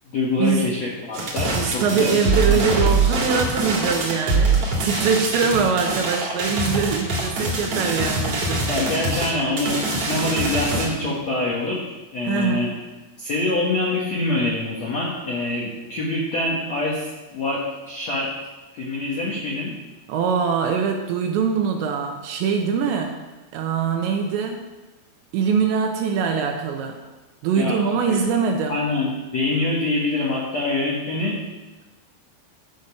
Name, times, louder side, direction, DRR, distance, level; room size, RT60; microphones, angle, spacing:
voice 1, 0.1-2.2 2.5-2.8 8.7-12.7 13.2-18.3 18.7-19.7 27.5-28.2 28.7-31.4, left 2 dB, 85° left, -4 dB, 1.5 m, -25 dB
sound 1, 1.1-10.9, right 3 dB, 55° right, 1.7 m, -23 dB
voice 2, 1.6-8.7 12.3-12.7 20.1-23.2 23.5-24.6 25.3-27.0 27.4-28.8, right 6 dB, 80° right, 3 dB, 2.7 m, -23 dB
11.0 x 5.2 x 7.0 m, 1.2 s
omnidirectional pair, 5.7 m